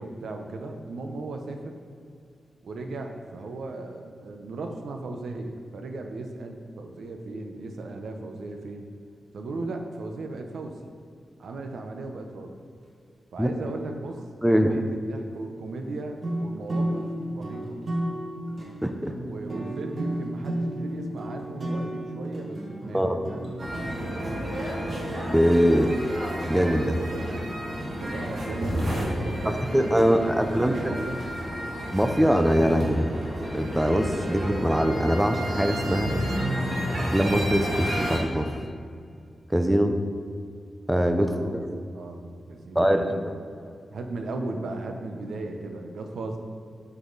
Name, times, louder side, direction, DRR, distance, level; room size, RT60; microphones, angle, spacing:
voice 1, 0.0-1.8 2.6-8.9 9.3-10.8 11.4-12.5 13.3-14.2 14.5-17.8 19.1-24.6 28.0-31.2 41.2-41.6 41.9-43.3 43.6-46.4, right 2 dB, 85° right, 4 dB, 1.0 m, -37 dB
voice 2, 14.4-14.7 18.8-19.1 22.9-23.2 25.3-25.9 26.5-27.0 29.4-31.1 31.9-33.1 33.5-36.1 37.1-38.5 39.5-40.0 40.9-41.8 42.7-43.0, equal, 5° right, 6 dB, 0.7 m, -22 dB
sound 1, 16.2-26.1, right 1 dB, 40° right, 1.7 m, -33 dB
sound 2, 23.6-38.2, equal, 60° right, 2.7 m, -31 dB
10.0 x 8.4 x 4.1 m, 2.2 s
wide cardioid pair, 105°, 0 cm